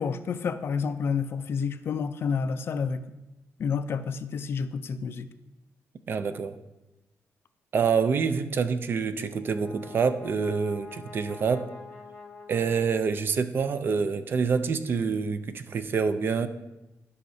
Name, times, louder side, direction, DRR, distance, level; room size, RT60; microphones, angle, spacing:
voice 1, 0.0-3.0 3.6-5.3, left 6 dB, 45° left, 11 dB, 0.4 m, -29 dB
voice 2, 6.1-6.5 7.7-11.7 12.5-16.5, right 5 dB, 40° right, 11 dB, 0.4 m, -26 dB
Brass instrument, 9.2-13.6, left 4 dB, 25° left, 2.6 m, -46 dB
13.5 x 5.6 x 2.7 m, 1.0 s
wide cardioid pair, 160°, 5 cm